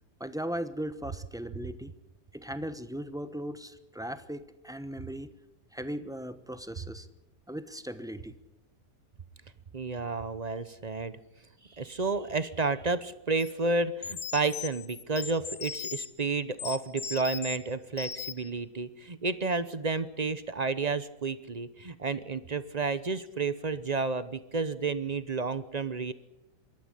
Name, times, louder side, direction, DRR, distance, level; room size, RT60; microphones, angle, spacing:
voice 1, 0.2-1.9 2.3-5.3 5.7-7.1 7.5-8.4, equal, 5° right, 11 dB, 0.7 m, -38 dB
voice 2, 9.7-11.2 11.7-26.1, right 3 dB, 35° right, 14 dB, 0.7 m, -31 dB
sound 1, 13.4-13.5 14.0-16.1 16.6-17.6 18.0-18.5, left 6 dB, 50° left, 1.1 m, -38 dB
24.5 x 13.0 x 9.9 m, 0.93 s
omnidirectional pair, 1.8 m